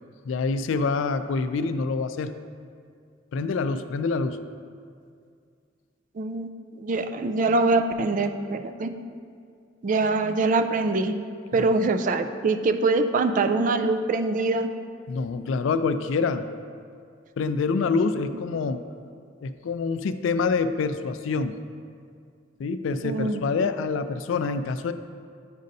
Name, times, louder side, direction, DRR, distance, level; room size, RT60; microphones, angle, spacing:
voice 1, 0.3-2.3 3.3-4.4 11.5-11.7 15.1-16.5 17.4-18.8 19.4-21.5 22.6-24.9, left 4 dB, 75° left, 11 dB, 0.3 m, -26 dB
voice 2, 6.2-6.5 6.8-8.9 9.8-11.2 11.5-14.7 23.0-23.5, right 3 dB, 40° right, 8 dB, 0.3 m, -24 dB
10.0 x 5.2 x 2.7 m, 2.2 s
head